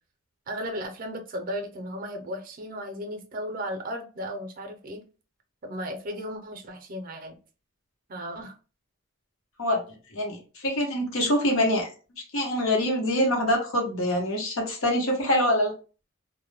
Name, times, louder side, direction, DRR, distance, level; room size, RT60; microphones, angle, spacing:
voice 1, 0.5-5.0 5.6-7.4 8.1-8.5, equal, 40° right, 0.5 m, -35 dB
voice 2, 10.1-11.9 12.3-15.7, left 1 dB, 80° left, 0.9 m, -25 dB
2.2 x 2.1 x 3.2 m
head